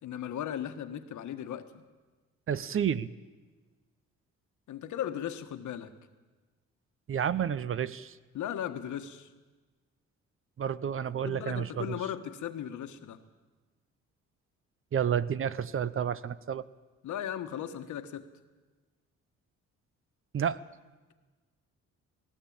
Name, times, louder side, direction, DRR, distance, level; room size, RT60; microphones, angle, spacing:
voice 1, 0.0-1.8 4.7-5.9 8.3-9.3 11.2-13.2 17.0-18.3, left 10 dB, 75° left, 9 dB, 1.5 m, -37 dB
voice 2, 2.5-3.1 7.1-8.2 10.6-12.0 14.9-16.6 20.3-20.6, right 8 dB, 45° right, 17 dB, 0.8 m, -30 dB
18.5 x 17.0 x 8.8 m, 1.3 s
cardioid pair, 90°, 30 cm